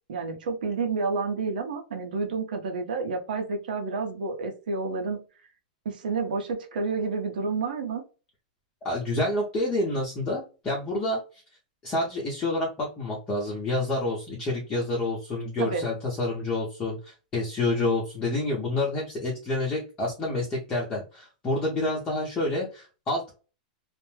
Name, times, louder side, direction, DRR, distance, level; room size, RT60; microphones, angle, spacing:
voice 1, 0.1-5.2 5.8-8.0 15.6-15.8, right 4 dB, 85° right, 4 dB, 1.0 m, -29 dB
voice 2, 8.8-11.2 11.8-23.3, left 2 dB, 20° left, -3 dB, 0.8 m, -28 dB
2.5 x 2.1 x 3.2 m, 0.33 s
supercardioid pair, 155°, 5 cm